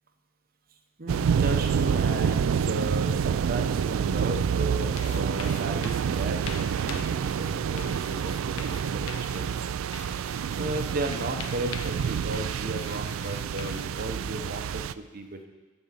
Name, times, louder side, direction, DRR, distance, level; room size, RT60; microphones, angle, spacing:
voice 1, 1.0-9.7 10.6-15.5, right 2 dB, 45° right, 5 dB, 0.9 m, -35 dB
sound 1, 1.1-14.9, right 7 dB, 75° right, 0.3 m, -28 dB
sound 2, 4.3-14.5, left 7 dB, 85° left, 0.6 m, -45 dB
13.0 x 5.3 x 7.5 m, 1.3 s
head